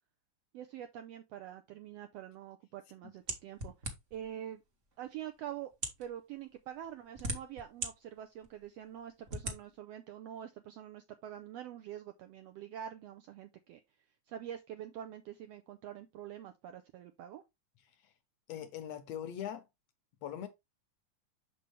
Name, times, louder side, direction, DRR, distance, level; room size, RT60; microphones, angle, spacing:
voice 1, 0.5-3.7 4.1-4.6 5.0-5.7 6.0-13.8 14.3-17.4, right 10 dB, 85° right, 1.4 m, -45 dB
sound 1, 3.3-4.3 5.0-5.1 5.7-6.1 6.8-7.9 8.4-8.5 9.3-9.6, right 2 dB, 50° right, 0.8 m, -38 dB
voice 2, 18.5-19.7 20.2-20.5, left 10 dB, 70° left, 1.7 m, -41 dB
6.9 x 5.4 x 3.1 m
omnidirectional pair, 3.5 m